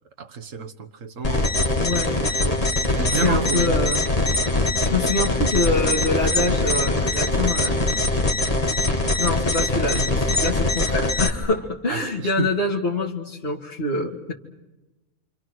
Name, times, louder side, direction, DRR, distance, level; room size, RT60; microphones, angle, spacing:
voice 1, 0.2-1.5 2.9-3.7 11.9-12.0 12.4-12.5, right 5 dB, 75° right, 1.8 m, -29 dB
sound 1, 1.2-11.3, left 2 dB, 30° left, 2.1 m, -22 dB
voice 2, 1.8-2.6 3.1-4.1 4.8-7.8 9.2-14.3, left 2 dB, 50° left, 2.5 m, -25 dB
29.0 x 27.0 x 6.4 m
omnidirectional pair, 1.3 m